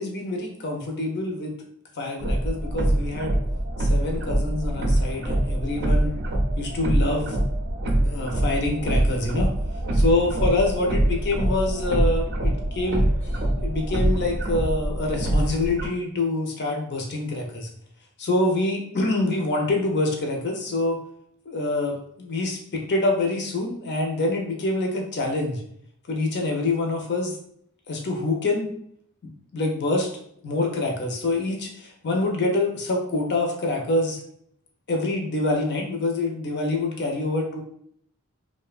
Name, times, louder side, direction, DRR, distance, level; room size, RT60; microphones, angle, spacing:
voice 1, 0.0-1.5 2.0-3.4 3.8-6.2 6.6-7.4 8.0-9.5 9.9-13.1 13.6-17.7 18.2-21.0 21.5-25.6 26.1-27.3 27.9-28.7 29.5-30.1 30.4-34.2 34.9-37.6, left 2 dB, 55° left, 1 dB, 0.6 m, -26 dB
sound 1, 2.2-15.9, right 1 dB, 55° right, 0.5 m, -24 dB
2.6 x 2.1 x 2.4 m, 0.68 s
head